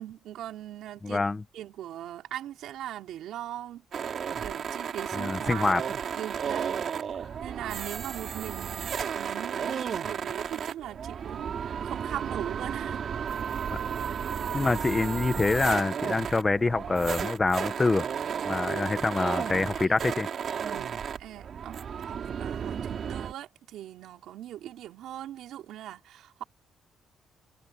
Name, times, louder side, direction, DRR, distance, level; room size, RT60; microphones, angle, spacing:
voice 1, 0.0-1.3 1.5-3.8 4.4-5.8 6.1-13.0 18.6-20.0 20.7-26.4, right 12 dB, 80° right, 4.2 m, -40 dB
voice 2, 1.0-1.4 5.1-5.8 13.7-13.8 14.5-18.1 18.4-20.3, left 3 dB, 25° left, 1.2 m, -26 dB
sound 1, 3.9-23.3, right 7 dB, 55° right, 4.8 m, -33 dB
cardioid pair, 90°, 0 cm